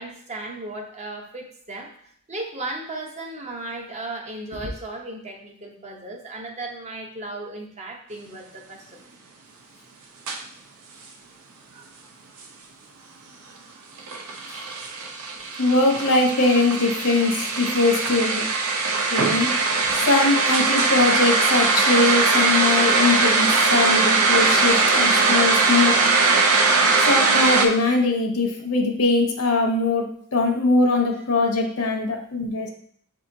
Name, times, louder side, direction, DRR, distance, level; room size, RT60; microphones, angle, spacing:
voice 1, 0.0-1.9 2.3-9.1 16.2-16.3, right 2 dB, 30° right, 1 dB, 0.7 m, -35 dB
sound 1, 10.3-10.4 14.0-27.7, right 3 dB, 70° right, 0.6 m, -20 dB
voice 2, 15.6-18.5 19.1-19.5 19.9-26.0 27.0-32.7, left 3 dB, 70° left, 3 dB, 0.8 m, -21 dB
7.3 x 2.8 x 2.6 m, 0.64 s
head